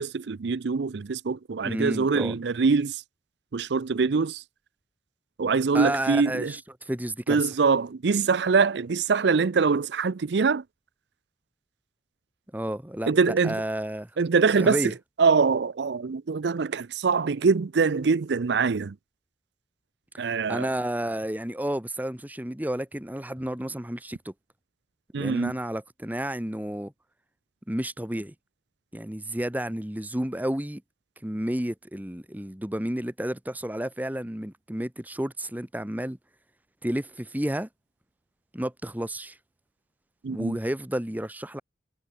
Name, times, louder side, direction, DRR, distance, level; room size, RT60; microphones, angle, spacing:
voice 1, 0.0-3.0 3.5-4.4 5.4-6.5 7.3-10.6 13.1-13.6 14.2-18.9 20.2-20.7 25.1-25.5 40.2-40.6, right 5 dB, 65° right, 0.5 m, -24 dB
voice 2, 1.6-2.4 5.7-7.4 12.5-14.1 14.5-14.9 20.1-24.3 25.1-26.9 27.7-28.3 28.9-30.8 31.2-36.2 36.8-37.7 38.5-39.4 40.3-41.6, right 1 dB, 10° right, 1.2 m, -31 dB
head